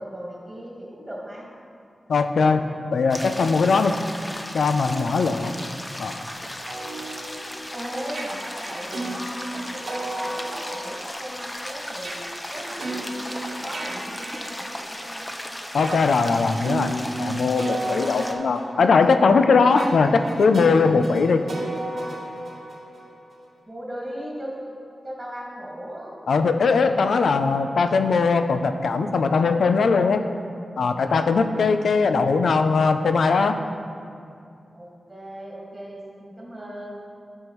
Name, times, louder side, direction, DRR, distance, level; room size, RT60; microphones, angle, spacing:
voice 1, 0.0-1.5 5.3-5.5 7.7-12.2 12.5-15.4 23.7-24.7 25.0-26.1 34.7-37.0, equal, 15° right, -5 dB, 1.8 m, -37 dB
voice 2, 2.1-4.0 4.5-5.5 6.0-6.2 15.7-16.9 17.2-21.4 26.3-30.2 30.8-33.6, left 4 dB, 90° left, 8 dB, 0.4 m, -20 dB
sound 1, 3.1-18.3, left 1 dB, 15° left, 0.5 m, -36 dB
sound 2, 6.4-15.2 15.7-23.5, right 2 dB, 90° right, 1.2 m, -34 dB
12.0 x 5.5 x 3.0 m, 2.4 s
wide cardioid pair, 105°, 0 cm